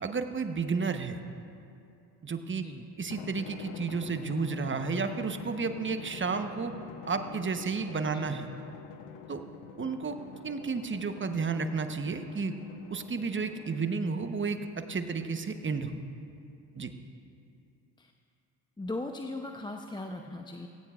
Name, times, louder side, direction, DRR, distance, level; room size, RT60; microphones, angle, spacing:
voice 1, 0.0-1.2 2.2-2.6 3.0-6.7 7.0-8.5 9.3-9.4 9.8-10.2 10.4-12.5 12.9-16.0 16.8-16.9, right 5 dB, 25° right, 7 dB, 1.1 m, -32 dB
Drum, 3.1-14.1, left 8 dB, 65° left, 0.9 m, -46 dB
voice 2, 8.1-8.4 18.0-18.1 18.8-20.7, left 2 dB, 10° left, 4 dB, 0.8 m, -38 dB
17.5 x 17.0 x 2.5 m, 2.6 s
hypercardioid pair, 50°, 49 cm